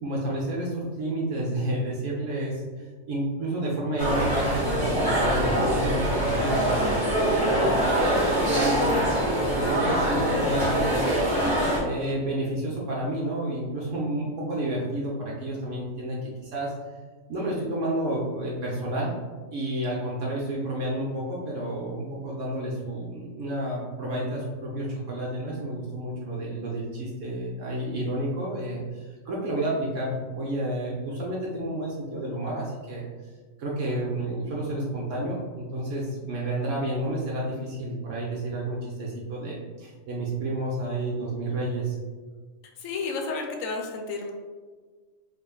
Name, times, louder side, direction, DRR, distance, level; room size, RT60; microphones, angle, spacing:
voice 1, 0.0-9.0 9.5-11.1 11.8-16.7 17.3-19.1 19.5-33.0 33.6-42.0, right 1 dB, 75° right, -4 dB, 1.0 m, -30 dB
sound 1, 4.0-11.8, equal, 30° right, 0.9 m, -24 dB
voice 2, 42.8-44.3, left 4 dB, 80° left, 2 dB, 1.0 m, -31 dB
4.8 x 2.4 x 2.3 m, 1.4 s
omnidirectional pair, 1.4 m